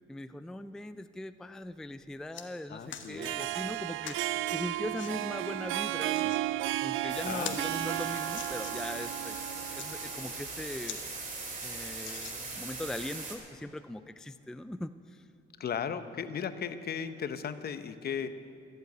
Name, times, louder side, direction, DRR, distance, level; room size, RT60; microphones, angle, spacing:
voice 1, 0.1-6.4 6.8-9.5 9.7-11.0 11.6-15.3, left 1 dB, 5° left, 11 dB, 0.4 m, -40 dB
sound 1, 1.6-1.8 2.1-2.5 2.9-3.1 4.0-4.3 4.9-5.1 5.9-6.4 6.9-7.0 7.3-9.0 9.6-9.9 10.4-10.5 10.8-11.0 11.4-11.5 12.0-12.7 13.4-13.5, left 9 dB, 70° left, 1.2 m, -44 dB
voice 2, 2.7-3.3 6.2-6.4 7.2-7.6 15.6-18.3, left 7 dB, 50° left, 11 dB, 0.8 m, -36 dB
Harp, 3.0-10.4, right 15 dB, 85° right, 0.4 m, -34 dB
sound 2, 7.1-13.4, right 3 dB, 40° right, 2.7 m, -40 dB
14.0 x 7.9 x 9.2 m, 2.5 s
cardioid pair, 90°, 20 cm